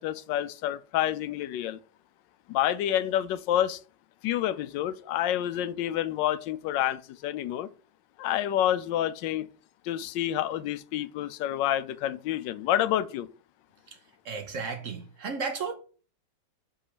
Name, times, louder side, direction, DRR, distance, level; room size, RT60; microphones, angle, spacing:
voice 1, 0.0-1.8 2.5-3.8 4.2-7.7 8.2-9.5 9.8-13.3, left 12 dB, 80° left, 1.2 m, -28 dB
voice 2, 14.2-15.7, right 5 dB, 55° right, 1.0 m, -33 dB
5.5 x 5.2 x 4.9 m
omnidirectional pair, 2.0 m